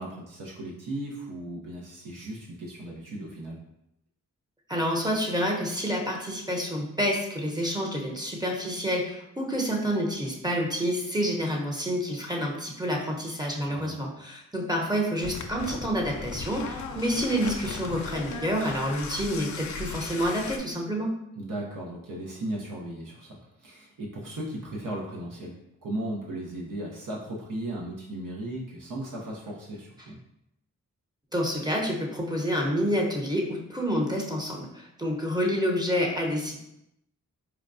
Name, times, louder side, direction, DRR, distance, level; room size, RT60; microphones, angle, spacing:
voice 1, 0.0-3.6 13.7-13.9 21.4-25.5 25.8-30.2, right 1 dB, 65° right, -3 dB, 0.8 m, -36 dB
voice 2, 4.7-21.1 31.3-36.6, equal, 10° right, -1 dB, 0.8 m, -28 dB
sound 1, 15.2-20.6, left 4 dB, 55° left, 0.5 m, -37 dB
4.5 x 2.2 x 2.6 m, 0.82 s
cardioid pair, 50°, 35 cm